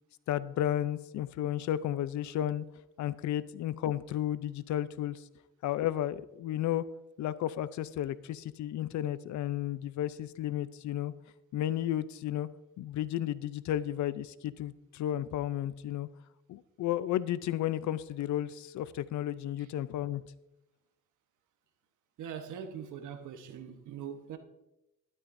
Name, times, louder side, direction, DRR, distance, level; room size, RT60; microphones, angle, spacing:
voice 1, 0.3-2.6 3.0-5.2 5.6-6.8 7.2-11.1 11.5-12.5 12.8-16.1 16.5-20.2, left 12 dB, 70° left, 0.5 m, -33 dB
voice 2, 22.2-24.4, right 8 dB, 80° right, 1.1 m, -42 dB
12.0 x 11.5 x 2.6 m
cardioid pair, 90°, 30 cm